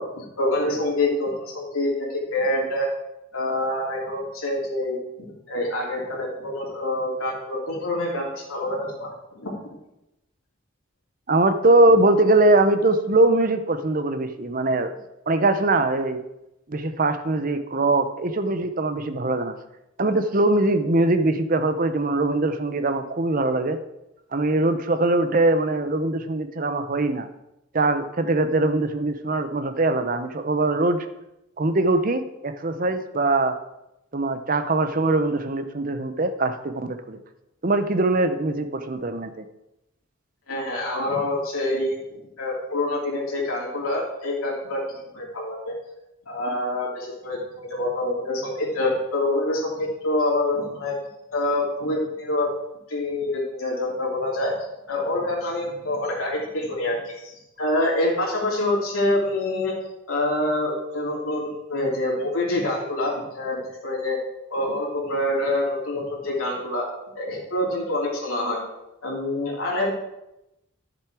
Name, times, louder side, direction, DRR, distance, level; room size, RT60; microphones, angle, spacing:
voice 1, 0.0-2.9 3.3-9.5 40.5-45.7 46.3-50.9 51.3-52.5 52.9-54.5 54.9-59.7 60.1-64.2 64.5-66.9 67.1-68.6 69.0-69.9, left 1 dB, 90° left, -4 dB, 2.9 m, -26 dB
voice 2, 11.3-14.9 15.3-16.2 16.7-19.5 20.0-23.8 24.3-27.3 27.7-31.0 31.6-33.6 34.1-37.2 37.6-39.4, right 2 dB, 40° right, 9 dB, 0.7 m, -22 dB
11.5 x 7.0 x 4.8 m, 0.90 s
head